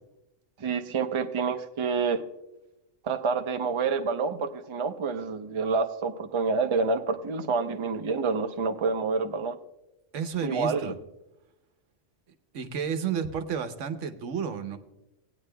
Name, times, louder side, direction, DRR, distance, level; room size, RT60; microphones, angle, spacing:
voice 1, 0.6-2.2 3.0-9.6 10.4-10.9, right 4 dB, 35° right, 7 dB, 0.5 m, -28 dB
voice 2, 10.1-11.0 12.5-14.8, right 7 dB, 85° right, 9 dB, 1.2 m, -31 dB
17.5 x 9.3 x 2.2 m, 0.90 s
omnidirectional pair, 1.2 m